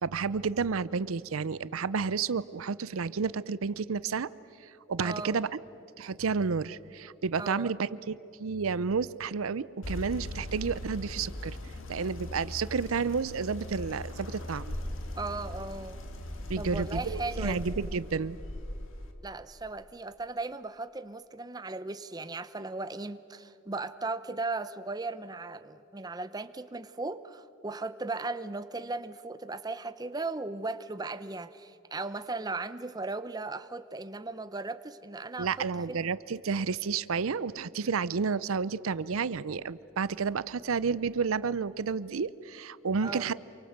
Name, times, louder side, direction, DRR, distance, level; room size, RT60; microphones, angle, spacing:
voice 1, 0.0-4.3 4.6-5.5 6.0-11.6 11.9-14.7 16.5-18.4 35.4-43.3, right 5 dB, 85° right, 18 dB, 0.6 m, -31 dB
voice 2, 5.0-5.4 7.4-7.7 15.2-16.0 16.6-17.8 19.2-36.1 43.0-43.3, right 3 dB, 20° right, 12 dB, 0.6 m, -37 dB
sound 1, 9.8-19.1, left 1 dB, 70° left, 2.2 m, -39 dB
27.5 x 24.0 x 8.0 m, 2.8 s
head